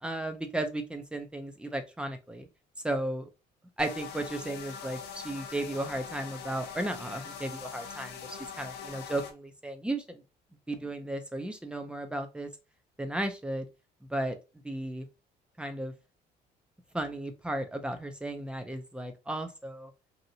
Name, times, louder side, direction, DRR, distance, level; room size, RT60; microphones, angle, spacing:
voice 1, 0.0-2.5 2.8-3.3 3.8-10.2 10.7-12.5 13.0-13.7 14.1-14.4 14.6-15.1 15.6-15.9 16.9-19.9, right 1 dB, 5° right, 7 dB, 0.5 m, -34 dB
sound 1, 3.8-9.3, left 6 dB, 80° left, 0.6 m, -42 dB
2.8 x 2.5 x 2.7 m, 0.27 s
cardioid pair, 110°, 17 cm